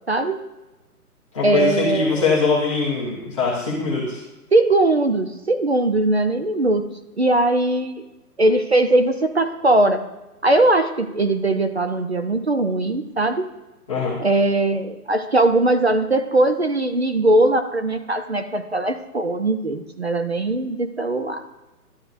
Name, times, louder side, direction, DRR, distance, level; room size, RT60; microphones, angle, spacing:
voice 1, 0.1-0.4 1.4-2.4 4.5-6.9 7.2-7.9 8.4-10.0 10.4-13.5 14.2-21.6, right 2 dB, 45° right, 8 dB, 0.5 m, -20 dB
voice 2, 1.3-4.2 13.9-14.2, left 4 dB, 20° left, -9 dB, 1.4 m, -22 dB
12.0 x 10.0 x 2.6 m, 1.0 s
hypercardioid pair, 175°, 46 cm